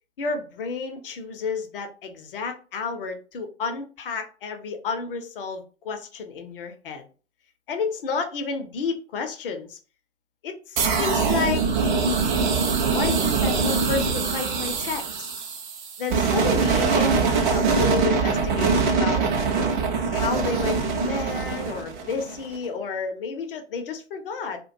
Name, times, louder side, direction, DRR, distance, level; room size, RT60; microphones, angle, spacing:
voice 1, 0.2-7.0 7.7-9.8 10.4-11.6 12.9-15.3 16.0-19.2 20.1-24.6, left 5 dB, 50° left, 6 dB, 0.6 m, -31 dB
sound 1, 10.8-22.5, right 4 dB, 45° right, 0.6 m, -23 dB
2.3 x 2.1 x 2.5 m, 0.36 s
figure-of-eight pair, 115°, 35 cm